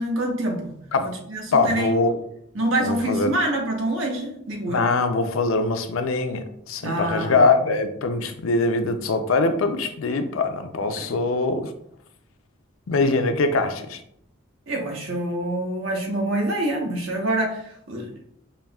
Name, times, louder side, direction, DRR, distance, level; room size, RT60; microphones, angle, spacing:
voice 1, 0.0-0.7 1.0-1.9 2.5-4.8 6.8-7.5 11.0-11.2 14.7-18.1, right 1 dB, 70° right, 0 dB, 1.0 m, -26 dB
voice 2, 1.5-2.2 2.8-3.3 4.7-11.7 12.9-14.0, left 3 dB, 75° left, 8 dB, 0.4 m, -22 dB
5.5 x 2.7 x 2.3 m, 0.70 s
head